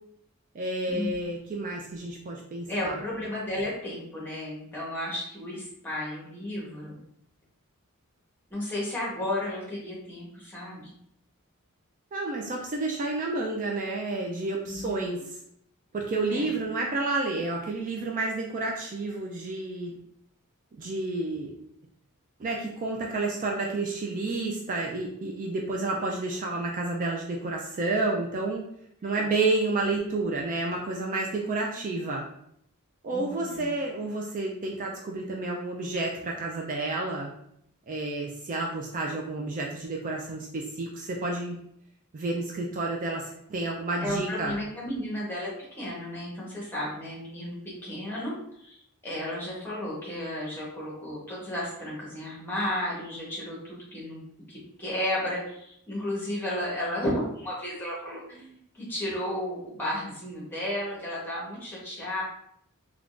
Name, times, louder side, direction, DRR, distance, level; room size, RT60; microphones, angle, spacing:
voice 1, 0.5-3.0 12.1-15.4 15.9-19.9 20.7-21.6 22.4-28.6 29.0-32.2 33.0-37.3 37.9-41.6 42.1-44.5, right 2 dB, 35° right, -1 dB, 0.3 m, -30 dB
voice 2, 2.7-7.0 8.5-10.9 14.7-14.9 16.3-16.5 29.1-29.2 33.1-33.7 44.0-54.2 54.5-62.2, left 1 dB, 10° left, -5 dB, 1.0 m, -33 dB
3.5 x 2.3 x 2.4 m, 0.73 s
head